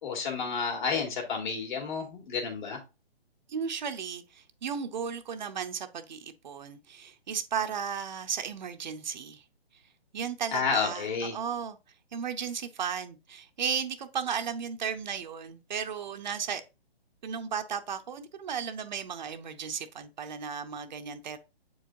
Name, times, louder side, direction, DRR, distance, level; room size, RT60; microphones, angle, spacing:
voice 1, 0.0-2.8 10.5-11.3, left 5 dB, 50° left, 2.4 m, -30 dB
voice 2, 3.5-9.4 10.1-11.8 12.1-16.6 17.2-21.4, right 7 dB, 45° right, 0.7 m, -35 dB
7.7 x 4.7 x 2.6 m
hypercardioid pair, 150°, 31 cm